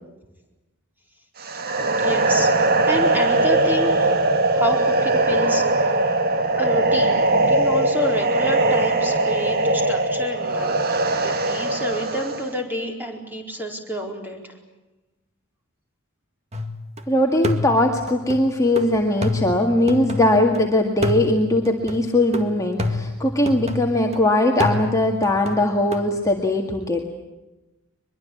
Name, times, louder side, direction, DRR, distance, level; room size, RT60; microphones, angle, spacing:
sound 1, 1.4-12.5, right 2 dB, 50° right, 1.7 m, -20 dB
voice 1, 1.8-4.2 4.5-5.9 6.6-14.5, equal, 10° right, 2 dB, 4.4 m, -29 dB
sound 2, 16.5-17.0 17.4-20.6 21.0-24.2 24.6-26.1, left 2 dB, 30° right, 2.0 m, -28 dB
voice 2, 17.1-27.1, left 1 dB, 15° left, 1 dB, 2.0 m, -20 dB
23.5 x 22.5 x 8.7 m, 1.0 s
head